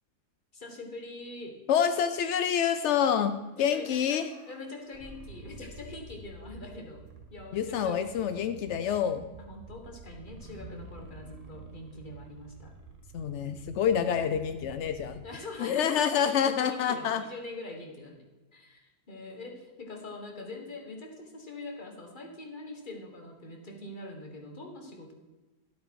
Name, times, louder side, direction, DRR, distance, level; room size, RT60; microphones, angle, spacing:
voice 1, 0.5-1.6 3.6-7.0 7.3-8.5 9.4-12.7 15.2-18.2 18.5-25.1, left 2 dB, 30° left, 3 dB, 1.6 m, -43 dB
voice 2, 1.7-4.3 7.5-9.2 13.1-15.2 15.6-17.2, left 8 dB, 70° left, 10 dB, 0.6 m, -27 dB
sound 1, 3.4-6.6 7.1-7.6 10.2-14.3, equal, 25° right, 1.3 m, -51 dB
sound 2, 5.3-15.3, right 6 dB, 85° right, 1.4 m, -50 dB
12.5 x 8.3 x 4.7 m, 1.2 s
omnidirectional pair, 1.8 m